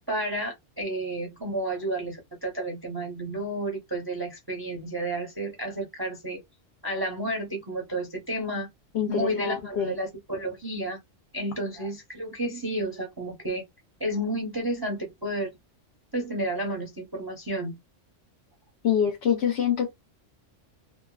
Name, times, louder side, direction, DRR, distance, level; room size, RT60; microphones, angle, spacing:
voice 1, 0.1-6.4 6.8-8.7 9.1-11.0 11.3-13.6 14.0-15.5 16.1-17.8, right 1 dB, 25° right, 0.6 m, -31 dB
voice 2, 8.9-10.0 18.8-19.9, left 8 dB, 65° left, 0.9 m, -25 dB
3.2 x 2.1 x 2.2 m
omnidirectional pair, 1.3 m